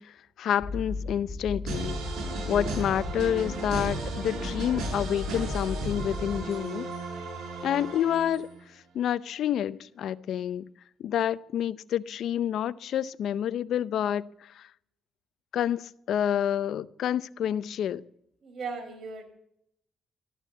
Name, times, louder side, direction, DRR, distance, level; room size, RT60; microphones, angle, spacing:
voice 1, 0.0-2.0 2.5-6.9 7.6-8.5 8.9-10.7 11.0-14.7 15.5-18.0, left 10 dB, 70° left, 0.6 m, -28 dB
sound 1, 0.6-6.4, left 3 dB, 35° left, 1.7 m, -36 dB
sound 2, 1.7-8.6, right 4 dB, 75° right, 6.9 m, -35 dB
voice 2, 18.4-19.3, right 4 dB, 55° right, 4.8 m, -37 dB
13.5 x 12.0 x 8.1 m
cardioid pair, 90°, 0 cm